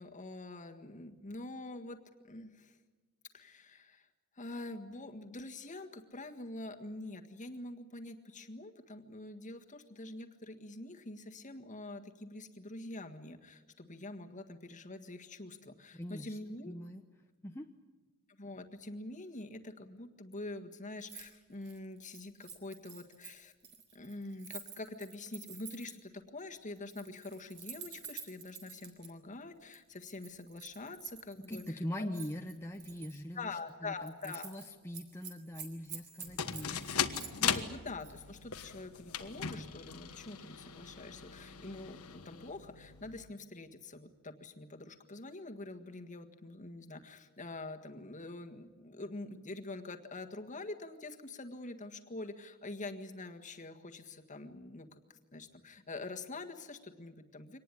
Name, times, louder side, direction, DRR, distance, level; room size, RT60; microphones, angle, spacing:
voice 1, 0.0-2.0 2.2-2.8 3.3-4.1 4.3-16.7 18.3-23.5 23.9-32.1 33.3-34.5 37.4-57.6, left 2 dB, 35° left, 5 dB, 1.7 m, -45 dB
voice 2, 15.9-16.4 16.7-17.0 17.4-17.7 31.5-37.3, left 1 dB, 10° left, 3 dB, 0.9 m, -42 dB
Keys jangling, 21.0-21.3 21.6-26.1 26.8-29.1 29.7-31.7 32.1-33.2 33.6-33.7 34.0-34.7 34.9-37.6 38.0-38.2, right 7 dB, 55° right, 4.0 m, -49 dB
sound 1, 36.2-43.3, left 8 dB, 85° left, 1.4 m, -39 dB
24.5 x 19.0 x 9.9 m, 1.3 s
head